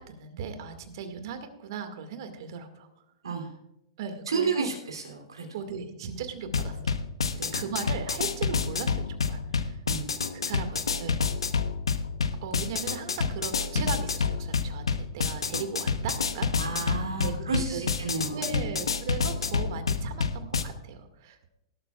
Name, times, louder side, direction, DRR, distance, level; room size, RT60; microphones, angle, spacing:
voice 1, 0.1-2.9 4.0-4.7 5.5-6.9 7.5-9.8 10.3-11.6 12.4-16.5 17.2-17.9 18.3-21.5, right 6 dB, 60° right, 7 dB, 2.0 m, -37 dB
voice 2, 3.2-3.5 4.3-5.5 7.3-7.6 9.9-10.1 16.6-18.8, right 4 dB, 85° right, 1 dB, 2.9 m, -32 dB
sound 1, 6.4-20.6, left 5 dB, 90° left, 0.9 m, -29 dB
18.0 x 12.5 x 2.4 m, 0.86 s
hypercardioid pair, 110°, 3 cm